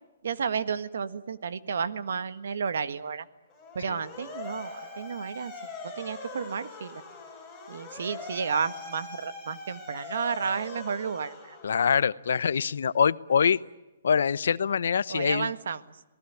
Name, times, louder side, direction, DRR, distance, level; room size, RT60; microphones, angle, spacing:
voice 1, 0.2-3.3 3.7-7.0 7.7-11.6 15.1-16.0, right 6 dB, 70° right, 13 dB, 1.5 m, -32 dB
Motor vehicle (road) / Siren, 3.5-12.1, left 3 dB, 5° left, 6.6 m, -42 dB
voice 2, 11.6-13.6 14.0-15.5, left 7 dB, 70° left, 18 dB, 0.8 m, -24 dB
28.0 x 19.0 x 9.4 m, 1.1 s
hypercardioid pair, 170°, 0 cm